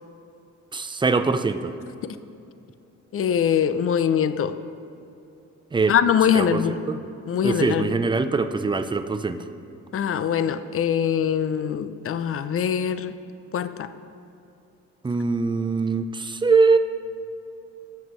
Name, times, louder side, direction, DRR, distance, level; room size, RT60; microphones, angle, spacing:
voice 1, 0.7-1.7 5.7-5.9 6.3-6.6 6.9-7.0 7.4-9.4 15.0-16.8, right 4 dB, 15° right, 10 dB, 0.5 m, -22 dB
voice 2, 3.1-4.6 5.9-6.8 7.3-8.0 9.9-13.2 13.5-13.9, left 8 dB, 45° left, 13 dB, 0.5 m, -23 dB
17.5 x 7.3 x 3.1 m, 2.6 s
cardioid pair, 90°, 30 cm